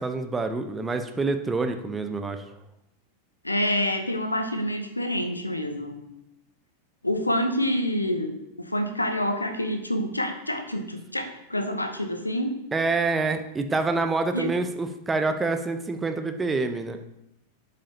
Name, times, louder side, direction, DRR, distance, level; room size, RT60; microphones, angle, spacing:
voice 1, 0.0-2.4 12.7-17.0, right 3 dB, 15° right, 7 dB, 0.7 m, -27 dB
voice 2, 3.4-6.0 7.0-8.3 8.6-12.5 14.3-14.5, equal, 85° left, 7 dB, 0.8 m, -27 dB
11.5 x 5.1 x 2.9 m, 0.86 s
figure-of-eight pair, 90°, 0 cm